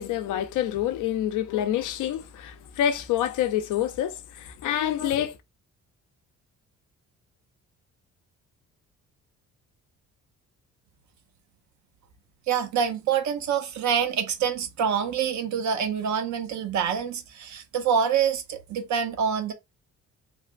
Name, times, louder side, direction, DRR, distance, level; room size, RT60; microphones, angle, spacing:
voice 1, 0.0-5.4, left 11 dB, 80° left, 0.5 m, -27 dB
voice 2, 12.5-19.5, right 7 dB, 70° right, 0.7 m, -26 dB
3.2 x 2.2 x 2.4 m
cardioid pair, 90°, 30 cm